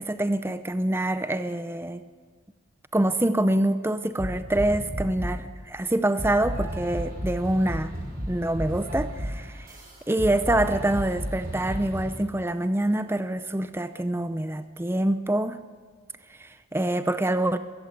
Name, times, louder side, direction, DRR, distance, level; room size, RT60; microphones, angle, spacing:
voice 1, 0.0-2.0 2.9-7.9 8.3-9.7 10.1-15.6 16.4-17.6, right 1 dB, 10° right, 11 dB, 0.6 m, -25 dB
sound 1, 4.2-5.5 6.2-12.2, equal, 45° right, 5.7 m, -33 dB
22.5 x 14.5 x 8.1 m, 1.5 s
head